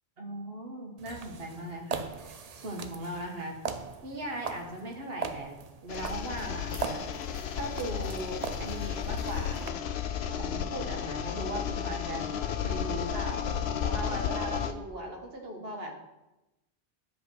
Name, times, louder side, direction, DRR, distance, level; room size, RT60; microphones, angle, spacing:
voice 1, 0.2-3.6 4.0-9.6 10.4-12.3 12.6-13.4 13.8-16.0, right 1 dB, 70° right, 1 dB, 1.7 m, -39 dB
sound 1, 1.0-9.7, right 5 dB, 45° right, 0.6 m, -40 dB
sound 2, 5.9-14.7, left 8 dB, 85° left, 0.9 m, -33 dB
10.0 x 5.2 x 6.1 m, 0.98 s
omnidirectional pair, 1.0 m